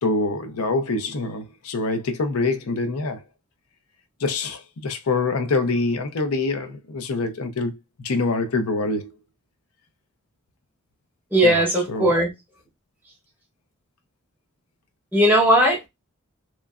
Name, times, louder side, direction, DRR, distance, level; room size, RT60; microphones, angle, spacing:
voice 1, 0.0-3.2 4.2-9.1 11.4-11.6 11.9-12.1, left 3 dB, 85° left, 0.6 m, -25 dB
voice 2, 11.3-12.3 15.1-15.9, right 1 dB, 10° right, 0.9 m, -18 dB
3.0 x 2.3 x 2.3 m
head